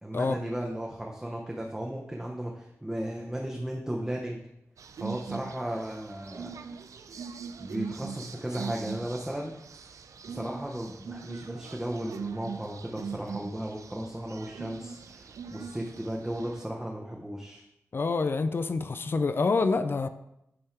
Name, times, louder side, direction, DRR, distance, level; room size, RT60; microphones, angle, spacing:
voice 1, 0.0-4.4 5.0-6.5 7.6-9.5 10.3-17.6, right 1 dB, 10° right, -1 dB, 0.6 m, -35 dB
sound 1, 4.8-16.6, right 6 dB, 85° right, 0.4 m, -41 dB
voice 2, 17.9-20.1, left 4 dB, 45° left, 10 dB, 0.3 m, -27 dB
8.7 x 3.6 x 4.4 m, 0.83 s
wide cardioid pair, 135°, 5 cm